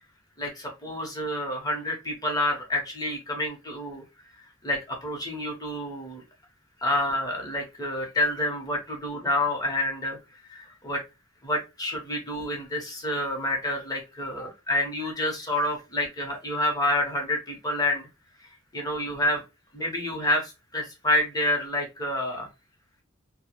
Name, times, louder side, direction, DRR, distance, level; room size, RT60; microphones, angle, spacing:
voice 1, 0.4-4.0 4.6-6.2 6.8-10.2 10.5-11.0 11.4-18.1 18.7-19.4 19.7-22.5, left 1 dB, 20° left, 1 dB, 0.7 m, -28 dB
2.7 x 2.0 x 2.8 m, 0.26 s
head